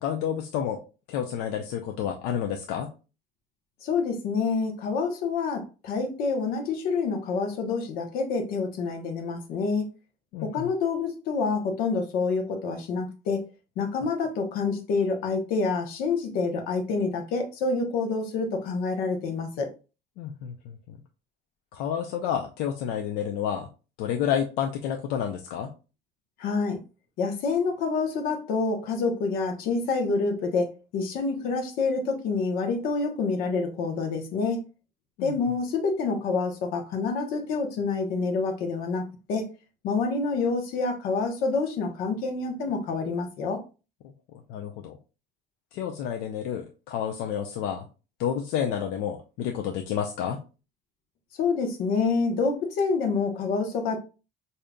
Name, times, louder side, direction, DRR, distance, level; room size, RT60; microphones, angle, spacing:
voice 1, 0.0-0.8 1.1-2.9 10.3-10.7 20.2-21.0 21.7-23.7 24.0-25.7 35.2-35.3 44.5-45.0 45.7-47.9 48.2-50.4, left 9 dB, 80° left, 3 dB, 0.5 m, -30 dB
voice 2, 3.8-9.9 10.4-13.4 13.8-19.7 26.4-26.8 27.2-34.6 35.2-39.0 39.3-39.4 39.8-43.6 51.4-54.0, left 4 dB, 60° left, 4 dB, 0.9 m, -27 dB
5.0 x 2.8 x 2.2 m, 0.32 s
cardioid pair, 175°, 17 cm